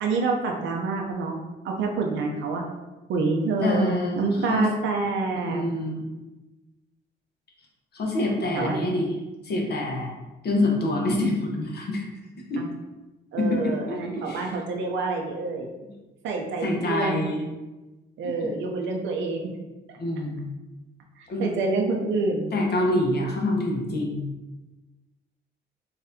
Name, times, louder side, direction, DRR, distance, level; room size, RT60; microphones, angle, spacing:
voice 1, 0.0-1.4 1.6-2.6 3.1-5.6 8.5-8.8 12.6-12.7 13.3-15.7 16.2-17.2 18.2-19.5 21.2-22.5, right 3 dB, 70° right, 1 dB, 0.5 m, -27 dB
voice 2, 3.6-4.7 5.5-6.1 7.9-9.1 9.4-10.1 10.4-12.0 12.5-12.6 13.4-14.5 15.8-15.9 16.6-17.5 20.0-20.5 21.3-21.6 22.5-24.2, left 1 dB, 55° left, 0 dB, 0.9 m, -26 dB
4.0 x 2.6 x 2.7 m, 1.1 s
cardioid pair, 90°, 20 cm